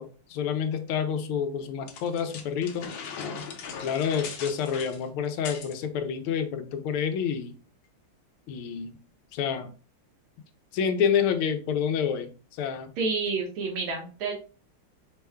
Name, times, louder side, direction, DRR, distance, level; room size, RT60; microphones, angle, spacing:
voice 1, 0.0-2.9 3.8-7.5 8.5-9.0 9.3-9.7 10.7-12.9, left 7 dB, 90° left, 8 dB, 1.5 m, -28 dB
sound 1, 1.9-5.8, left 6 dB, 70° left, 1.4 m, -39 dB
voice 2, 13.0-14.3, right 4 dB, 75° right, 1 dB, 1.9 m, -29 dB
5.1 x 2.2 x 3.4 m, 0.37 s
omnidirectional pair, 2.3 m